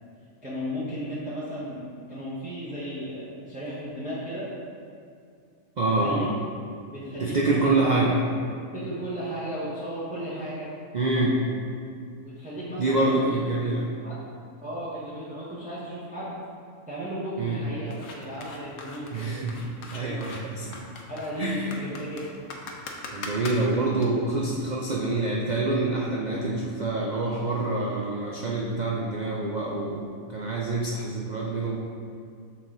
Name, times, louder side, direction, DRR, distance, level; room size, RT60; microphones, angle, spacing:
voice 1, 0.4-4.5 5.8-6.3 6.9-8.2 8.7-10.7 11.2-11.5 12.2-13.4 14.0-14.2 14.6-16.4 16.9-19.4 20.0-20.1 21.1-22.3, equal, 5° right, -10 dB, 1.0 m, -35 dB
voice 2, 5.8-6.3 7.2-8.2 10.9-11.4 12.8-13.9 17.4-17.6 19.1-20.8 21.4-21.7 23.1-31.8, right 2 dB, 65° right, -4 dB, 0.4 m, -26 dB
sound 1, 17.9-24.1, left 3 dB, 70° left, 1.0 m, -41 dB
6.6 x 4.0 x 3.8 m, 2.3 s
omnidirectional pair, 1.4 m